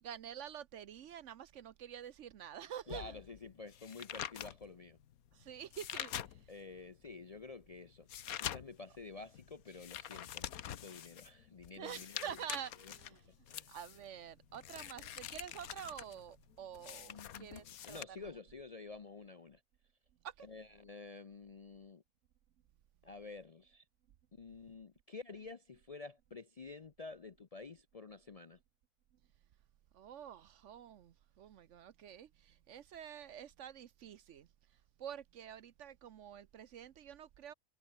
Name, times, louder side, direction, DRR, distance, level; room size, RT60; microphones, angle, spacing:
voice 1, 0.0-3.2 5.3-6.5 11.8-13.3 13.7-18.3 20.2-20.5 29.9-34.5 35.0-37.5, right 9 dB, 65° right, 1.0 m, -48 dB
sound 1, 2.9-6.7 7.2-18.0, left 11 dB, 85° left, 1.3 m, -46 dB
voice 2, 2.9-5.0 6.5-8.1 8.4-12.4 12.8-12.9 13.5-13.7 17.1-19.6 20.4-22.0 23.0-23.8 24.3-28.6, left 4 dB, 40° left, 0.5 m, -50 dB
omnidirectional pair, 1.5 m